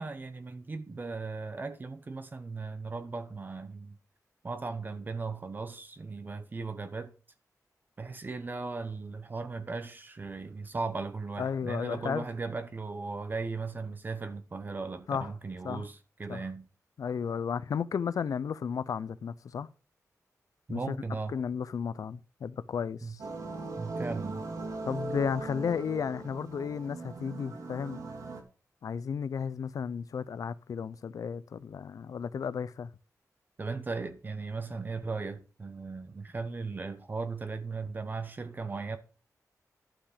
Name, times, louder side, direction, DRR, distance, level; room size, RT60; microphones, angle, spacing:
voice 1, 0.0-4.0 4.4-7.1 8.0-16.7 20.7-21.3 23.0-23.2 23.8-24.4 33.6-39.0, right 4 dB, 30° right, 0.8 m, -37 dB
voice 2, 11.4-12.2 15.1-15.3 15.6-15.9 16.3-16.4 17.0-19.7 20.7-21.0 21.3-23.2 24.9-28.0 28.8-32.9, left 6 dB, 65° left, 0.5 m, -33 dB
sound 1, 23.2-28.4, right 3 dB, 65° right, 2.1 m, -39 dB
12.0 x 5.9 x 4.9 m
wide cardioid pair, 175°, 6 cm